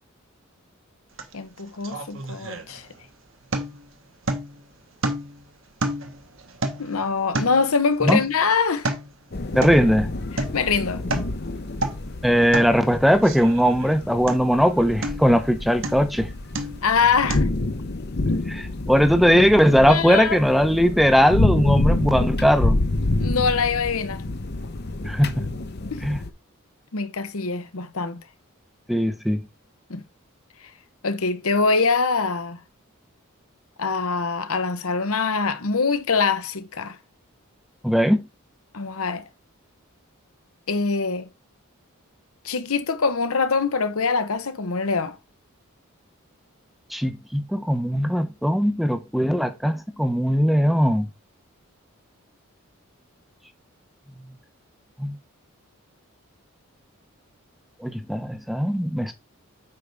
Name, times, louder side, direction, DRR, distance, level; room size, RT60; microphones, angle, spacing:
sound 1, 1.2-1.3 1.6-3.1 3.5-3.9 4.3-4.6 5.0-5.4 5.8-7.7 8.1-8.4 8.7-9.1 9.6-9.9 10.4-10.6 10.9-11.4 11.7-12.1 12.5-12.8 13.2-13.9 14.3-14.6 15.0-15.4 15.8-16.1 16.5-16.9 17.3-17.4, right 1 dB, 65° right, 1.2 m, -29 dB
voice 1, 1.3-2.9 6.8-8.9 10.3-11.0 16.8-17.5 19.9-20.4 23.2-24.2 25.9-26.0 26.9-28.2 29.9-30.0 31.0-32.6 33.8-37.0 38.7-39.2 40.7-41.3 42.4-45.2, left 4 dB, 85° left, 1.0 m, -24 dB
sound 2, 9.3-26.3, left 2 dB, 50° left, 0.8 m, -28 dB
voice 2, 9.5-10.1 12.2-16.3 18.5-22.8 25.0-25.4 26.0-26.2 28.9-29.4 37.8-38.2 46.9-51.1 55.0-55.1 57.8-59.1, equal, ahead, 0.7 m, -19 dB
8.4 x 5.4 x 3.4 m
head